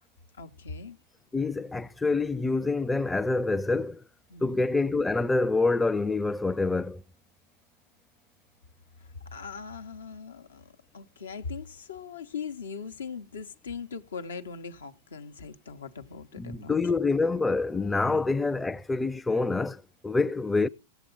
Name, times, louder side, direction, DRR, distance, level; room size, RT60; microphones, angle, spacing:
voice 1, 0.4-1.0 4.3-4.6 9.3-16.8 18.0-18.2, left 5 dB, 85° left, 0.8 m, -40 dB
voice 2, 1.3-4.0 4.4-7.0 16.4-20.7, left 3 dB, 10° left, 0.5 m, -26 dB
17.0 x 7.1 x 3.8 m
hypercardioid pair, 105°, 0 cm